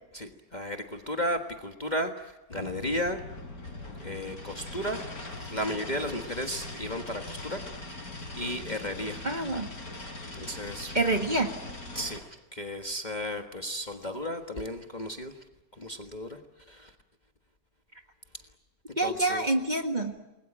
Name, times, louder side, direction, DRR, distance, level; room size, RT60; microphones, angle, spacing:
voice 1, 0.1-3.2 4.0-7.6 8.4-9.3 10.3-11.0 11.9-15.4 15.8-16.4 16.7-16.9 19.0-19.4, equal, 25° left, 5 dB, 1.5 m, -34 dB
sound 1, 2.5-12.2, left 2 dB, 60° left, 4.2 m, -41 dB
voice 2, 9.2-9.7 10.9-11.5 19.0-20.2, right 2 dB, 25° right, 5 dB, 1.8 m, -27 dB
28.5 x 21.0 x 8.9 m, 1.0 s
omnidirectional pair, 1.8 m